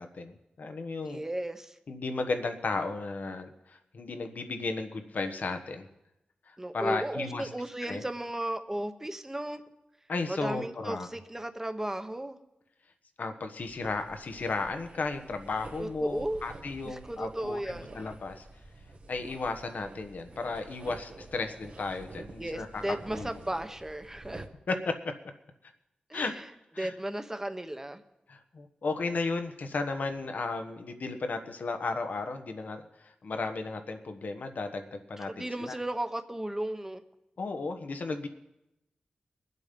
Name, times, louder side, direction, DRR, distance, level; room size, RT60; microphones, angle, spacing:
voice 1, 0.0-1.2 1.9-5.9 6.5-7.5 7.9-8.0 10.1-11.1 13.2-18.4 19.1-22.8 23.1-23.3 24.7-25.1 26.1-26.3 26.7-26.9 28.3-35.8 37.4-38.3, left 3 dB, 75° left, 6 dB, 1.3 m, -34 dB
voice 2, 1.0-1.7 6.6-9.6 10.3-12.4 15.8-16.4 16.8-18.0 22.4-24.5 26.1-26.4 26.8-28.0 35.2-37.0, right 1 dB, 15° right, 7 dB, 1.2 m, -35 dB
sound 1, 13.6-24.5, right 2 dB, 55° right, 1.4 m, -48 dB
22.0 x 8.2 x 5.3 m, 0.88 s
cardioid pair, 65°, 3 cm